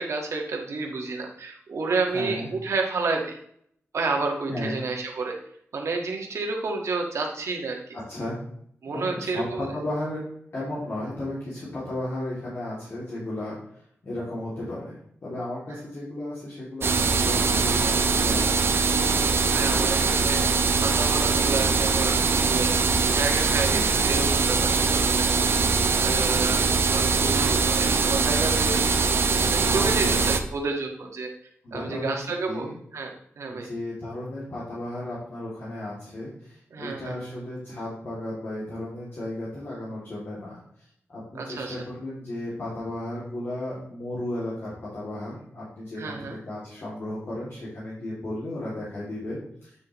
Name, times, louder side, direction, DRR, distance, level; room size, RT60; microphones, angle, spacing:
voice 1, 0.0-3.3 3.9-5.3 5.7-8.0 8.8-9.7 19.5-20.4 20.8-22.8 23.1-25.6 26.0-28.8 29.4-31.3 31.7-33.7 36.7-37.1 41.3-41.8 46.0-46.4, right 3 dB, 80° right, 2 dB, 1.6 m, -30 dB
voice 2, 2.1-2.5 4.5-4.8 8.1-8.4 8.9-10.2 10.5-18.8 23.7-23.9 29.5-30.4 31.6-32.7 33.5-40.6 41.1-49.7, left 1 dB, 55° left, -8 dB, 2.6 m, -34 dB
sound 1, 16.8-30.4, right 4 dB, 55° right, 0.7 m, -22 dB
9.2 x 6.5 x 3.1 m, 0.67 s
wide cardioid pair, 165°, 5 cm